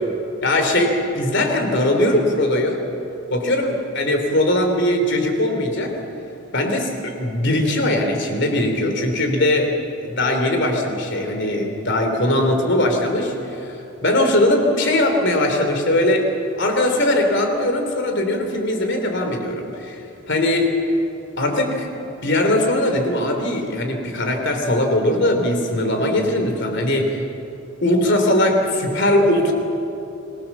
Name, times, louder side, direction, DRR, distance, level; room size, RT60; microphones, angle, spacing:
voice 1, 0.4-2.8 3.3-6.0 6.5-9.7 10.0-16.3 16.6-20.0 20.3-20.7 21.4-27.2 27.8-29.5, left 1 dB, 55° left, 4 dB, 3.2 m, -20 dB
26.0 x 17.5 x 7.3 m, 2.9 s
head